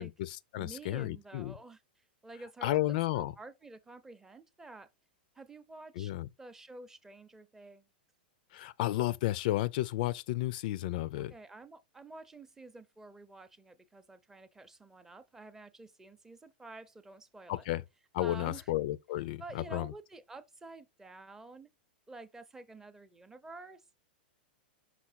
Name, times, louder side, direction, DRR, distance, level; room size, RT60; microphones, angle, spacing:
voice 1, 0.0-1.5 2.6-3.3 6.0-6.3 8.5-11.3 17.5-17.8 18.1-19.4 19.7-19.9, left 15 dB, 55° left, 0.4 m, -32 dB
voice 2, 0.6-4.9 5.3-6.1 6.4-7.9 11.2-17.7 18.2-18.7 19.4-21.7 22.1-23.8, right 2 dB, 10° right, 0.6 m, -50 dB
5.8 x 4.1 x 4.4 m
supercardioid pair, 140°, 5 cm